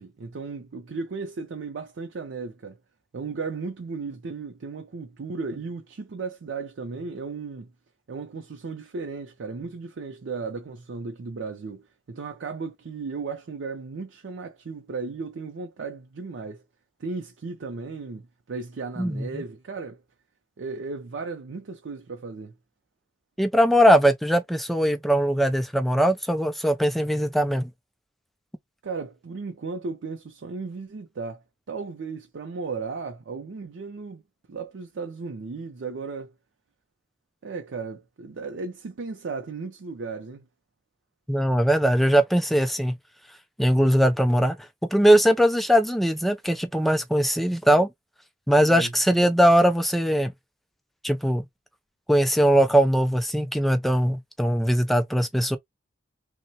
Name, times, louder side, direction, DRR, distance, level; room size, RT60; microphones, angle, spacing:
voice 1, 0.0-2.8 3.1-7.7 8.1-16.6 17.0-20.0 20.6-22.5 28.8-34.2 34.5-36.3 37.4-40.5 48.6-48.9, right 4 dB, 65° right, 0.5 m, -35 dB
voice 2, 19.0-19.4 23.4-27.7 41.3-42.9 43.6-44.6 44.9-47.9 48.5-50.3 51.0-51.5 52.1-55.6, equal, ahead, 0.3 m, -20 dB
3.1 x 2.1 x 2.7 m
head